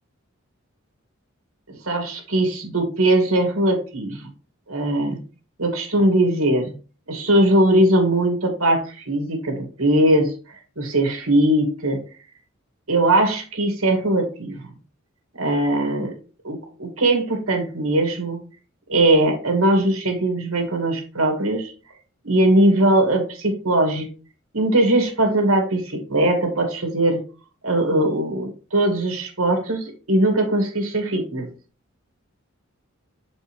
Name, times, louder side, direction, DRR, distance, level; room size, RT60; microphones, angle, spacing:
voice 1, 1.7-4.3 4.7-5.2 5.6-6.7 7.1-10.3 10.8-12.0 12.9-14.7 15.4-16.1 16.4-18.4 18.9-21.7 22.2-24.1 24.5-27.2 27.6-31.5, right 1 dB, 85° right, 3 dB, 2.4 m, -20 dB
6.6 x 5.4 x 3.3 m, 0.34 s
head